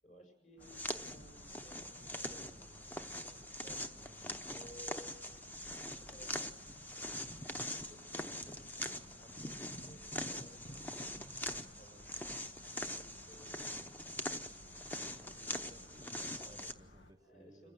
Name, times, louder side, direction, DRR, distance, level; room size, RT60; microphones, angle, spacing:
voice 1, 0.0-3.9 4.5-5.2 6.0-6.8 7.6-12.1 12.7-14.2 15.1-16.7 17.2-17.7, equal, 45° left, 4 dB, 6.5 m, -60 dB
sound 1, 0.6-17.1, left 1 dB, 85° left, 1.9 m, -58 dB
sound 2, 0.6-16.7, left 1 dB, 10° left, 0.8 m, -43 dB
voice 2, 3.9-4.5 15.1-17.7, right 1 dB, 20° right, 8 dB, 0.8 m, -62 dB
27.5 x 15.0 x 7.9 m, 0.96 s
head